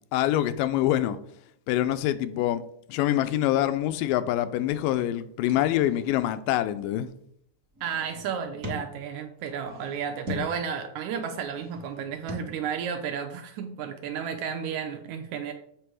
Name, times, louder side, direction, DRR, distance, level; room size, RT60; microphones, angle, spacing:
voice 1, 0.1-1.2 1.7-2.6 2.9-7.1, left 13 dB, 85° left, 2.2 m, -25 dB
sound 1, 5.5-6.9 7.6-9.0 9.4-10.7 11.2-12.3, left 2 dB, 45° right, 1.0 m, -41 dB
voice 2, 7.8-15.5, right 7 dB, 75° right, 1.8 m, -32 dB
8.0 x 3.4 x 6.1 m
omnidirectional pair, 3.8 m